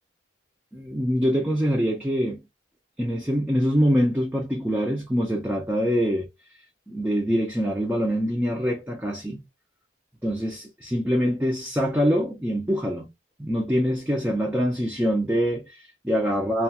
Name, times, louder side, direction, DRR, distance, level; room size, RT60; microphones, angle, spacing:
voice 1, 0.7-2.4 3.0-6.3 6.9-9.4 10.2-13.1 13.4-16.6, equal, 10° right, 0.4 m, -24 dB
2.3 x 2.2 x 2.7 m
head